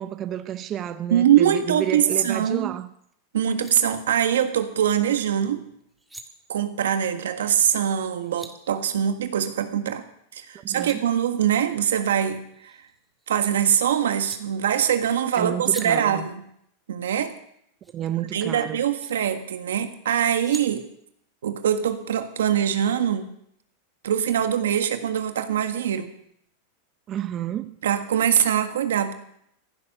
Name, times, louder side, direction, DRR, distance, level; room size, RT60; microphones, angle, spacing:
voice 1, 0.0-2.9 10.5-11.0 15.3-16.2 17.9-18.8 27.1-27.7, right 10 dB, 35° right, 0.7 m, -30 dB
voice 2, 1.1-2.7 3.3-5.6 6.5-10.0 10.3-12.8 13.3-16.4 16.9-17.3 18.2-20.9 21.4-23.3 24.0-26.1 27.8-29.1, right 9 dB, 90° right, 1.6 m, -23 dB
sound 1, 3.1-3.2 3.4-3.7 5.8-6.3 7.9-8.5 10.5-11.0 12.4-13.5 14.2-14.4 15.6-15.9 17.8-17.9 18.8-19.1 20.1-20.7, right 1 dB, 5° right, 1.7 m, -43 dB
15.5 x 11.0 x 6.6 m
hypercardioid pair, 125°, 0 cm